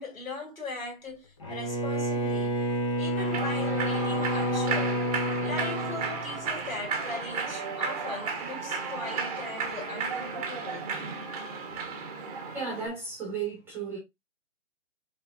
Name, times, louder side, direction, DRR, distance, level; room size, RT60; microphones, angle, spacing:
voice 1, 0.0-2.5 2.9-5.0 5.4-10.9, left 3 dB, 75° left, 3.1 m, -39 dB
Bowed string instrument, 1.4-6.7, equal, 20° left, 0.7 m, -29 dB
Human voice / Clapping / Cheering, 3.2-12.9, right 5 dB, 30° right, 1.0 m, -34 dB
voice 2, 12.5-14.0, right 5 dB, 5° right, 1.2 m, -34 dB
5.0 x 3.7 x 2.4 m
figure-of-eight pair, 145°, 41 cm